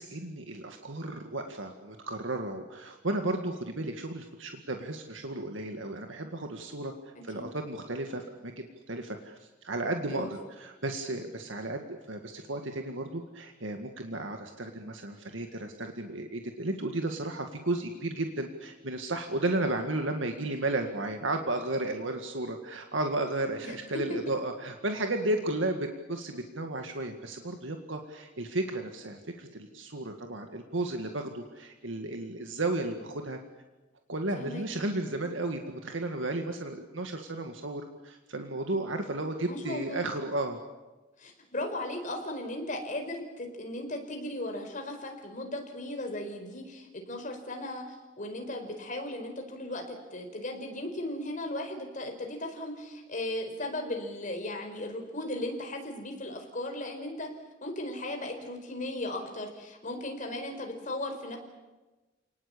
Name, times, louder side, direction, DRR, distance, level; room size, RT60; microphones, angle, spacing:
voice 1, 0.0-33.4 34.1-40.6, right 2 dB, 80° right, 5 dB, 2.0 m, -34 dB
voice 2, 39.5-40.1 41.2-57.3 57.6-61.4, left 1 dB, 45° left, 4 dB, 4.8 m, -37 dB
29.5 x 19.0 x 8.6 m, 1.2 s
head